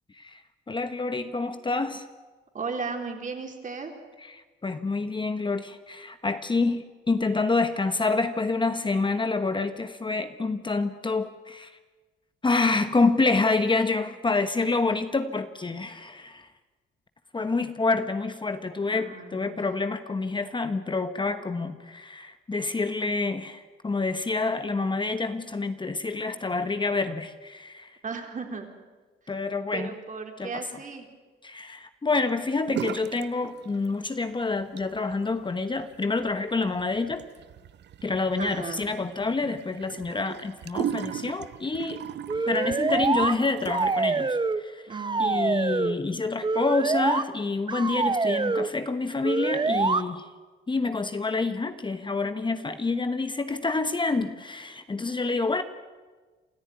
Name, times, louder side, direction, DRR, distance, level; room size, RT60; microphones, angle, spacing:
voice 1, 0.7-2.0 4.3-11.8 12.4-16.5 17.3-28.0 29.3-29.9 30.4-30.5 31.4-37.2 38.0-42.0 42.5-44.9 45.2-50.3 50.7-55.6, left 3 dB, 25° left, 9 dB, 1.2 m, -27 dB
voice 2, 2.5-3.9 18.9-19.6 28.0-28.7 29.7-31.1 38.4-38.9 44.9-45.6, right 4 dB, 40° right, 3 dB, 4.0 m, -35 dB
sound 1, 32.7-33.3 33.6-34.2 34.6-44.1, right 10 dB, 60° right, 0.8 m, -38 dB
sound 2, 42.3-43.3 43.7-44.6 44.9-45.9 46.4-47.2 47.7-48.7 49.2-50.0, right 4 dB, 25° right, 1.0 m, -25 dB
27.5 x 14.0 x 9.6 m, 1.3 s
cardioid pair, 90°, 20 cm